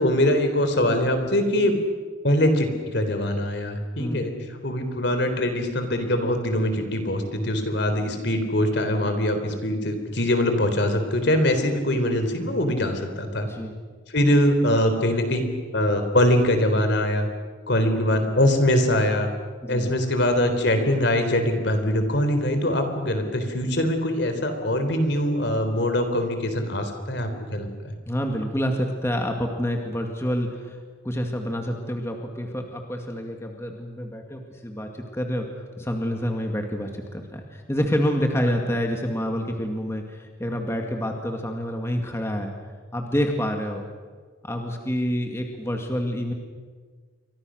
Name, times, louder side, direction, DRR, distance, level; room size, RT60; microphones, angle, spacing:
voice 1, 0.0-1.8 2.2-4.3 4.6-13.5 14.1-15.4 15.7-17.3 17.7-19.3 19.7-28.0, left 1 dB, 60° left, 7 dB, 3.8 m, -23 dB
voice 2, 28.1-30.8 31.0-35.5 35.8-42.5 42.9-43.9 44.4-46.3, equal, 15° left, 3 dB, 2.1 m, -27 dB
30.0 x 24.5 x 6.5 m, 1.5 s
head